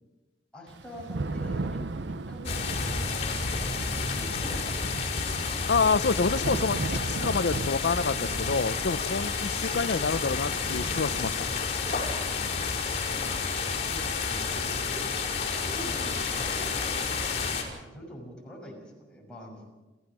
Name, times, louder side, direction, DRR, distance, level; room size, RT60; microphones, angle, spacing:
voice 1, 0.5-5.1 12.1-13.4 13.8-15.2 15.6-19.7, equal, 5° left, -2 dB, 6.2 m, -44 dB
Thunder / Rain, 0.7-16.4, right 3 dB, 80° right, 0.7 m, -39 dB
sound 1, 2.4-17.6, left 4 dB, 40° left, 5.1 m, -30 dB
voice 2, 5.7-11.5, left 4 dB, 65° left, 15 dB, 0.6 m, -28 dB
28.5 x 15.5 x 6.2 m, 1.1 s
head